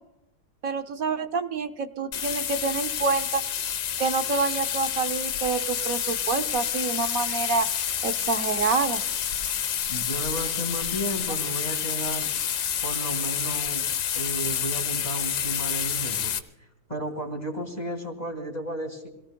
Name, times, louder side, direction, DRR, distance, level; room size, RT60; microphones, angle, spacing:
voice 1, 0.6-3.4 4.0-7.7 8.0-9.0, right 4 dB, 65° right, 8 dB, 0.9 m, -27 dB
sound 1, 2.1-16.4, left 9 dB, 90° left, 2.0 m, -29 dB
voice 2, 9.9-12.3 12.8-13.9 14.1-16.3 16.6-19.1, right 1 dB, 20° left, 2 dB, 2.6 m, -33 dB
27.0 x 18.0 x 2.2 m, 0.88 s
omnidirectional pair, 2.3 m